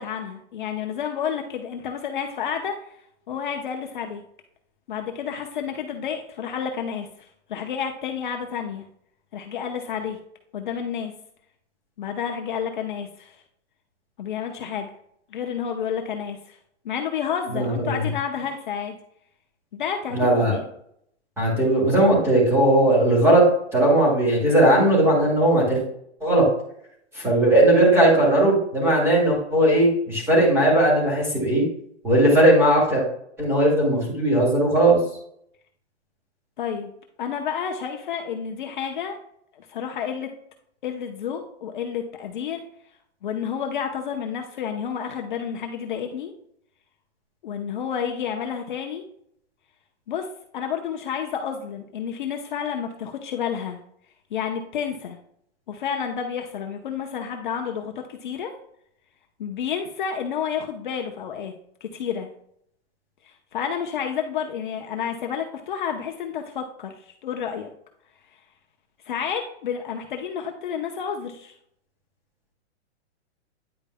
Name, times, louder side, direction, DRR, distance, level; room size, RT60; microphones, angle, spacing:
voice 1, 0.0-3.0 3.3-4.2 4.9-7.1 7.5-8.9 9.3-10.2 10.5-11.1 12.0-13.4 14.2-14.9 15.3-16.6 16.8-19.0 19.7-20.6 36.6-36.9 37.2-39.2 39.5-40.3 40.8-42.6 43.2-46.3 47.4-49.0 50.1-50.3 50.5-53.8 54.3-55.2 55.7-58.5 59.4-61.5 61.8-62.3 63.2-67.7 69.0-71.5, left 7 dB, 45° left, 3 dB, 0.8 m, -30 dB
voice 2, 17.5-18.0 20.1-20.6 21.4-23.5 23.7-25.8 26.2-26.5 27.1-31.6 32.0-33.0 33.4-35.0, right 1 dB, 5° right, -4 dB, 2.2 m, -18 dB
9.6 x 5.2 x 2.2 m, 0.70 s
hypercardioid pair, 175°, 34 cm